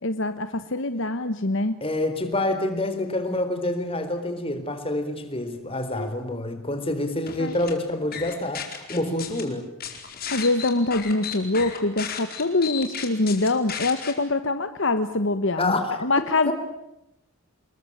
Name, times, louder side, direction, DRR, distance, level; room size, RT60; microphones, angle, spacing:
voice 1, 0.0-1.8 5.9-6.1 7.4-7.5 10.3-16.5, left 2 dB, 60° left, 10 dB, 1.2 m, -24 dB
voice 2, 1.8-9.8 15.6-15.9 16.4-16.5, left 1 dB, 25° left, 8 dB, 4.0 m, -27 dB
sound 1, 7.3-7.7 8.1-9.4 9.8-14.1, left 8 dB, 45° left, 4.6 m, -33 dB
28.0 x 22.0 x 8.8 m, 0.86 s
head